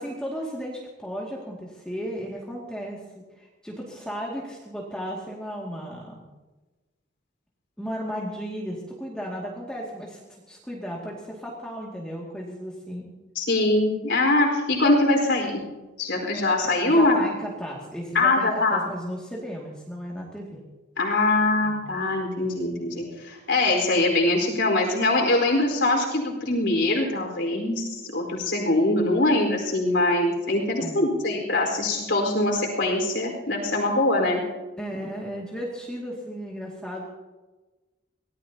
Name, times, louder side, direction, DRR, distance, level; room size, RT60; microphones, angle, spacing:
voice 1, 0.0-6.3 7.8-13.1 16.6-20.6 21.6-21.9 30.8-31.1 34.8-37.1, equal, 5° left, -4 dB, 2.2 m, -35 dB
voice 2, 13.3-15.6 16.0-17.3 18.1-18.8 21.0-34.4, left 2 dB, 70° left, 1 dB, 4.5 m, -23 dB
24.5 x 18.0 x 2.9 m, 1.2 s
head